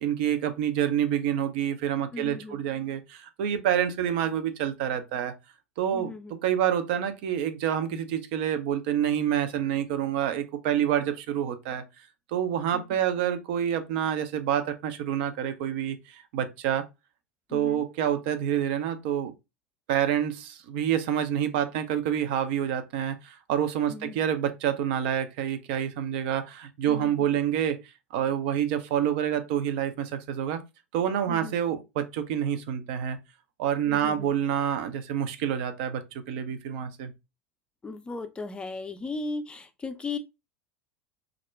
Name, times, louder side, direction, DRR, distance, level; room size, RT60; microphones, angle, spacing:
voice 1, 0.0-5.3 5.8-11.8 12.3-16.8 17.5-19.3 19.9-27.8 28.1-30.6 30.9-33.2 33.6-36.0 36.3-37.1, right 10 dB, 55° right, 0.5 m, -27 dB
voice 2, 2.1-2.6 5.9-6.4 12.7-13.0 17.5-17.8 23.9-24.3 26.9-27.3 31.3-31.6 33.9-34.3 37.8-40.2, left 3 dB, 15° left, 0.4 m, -37 dB
2.4 x 2.1 x 3.1 m
figure-of-eight pair, 80°, 7 cm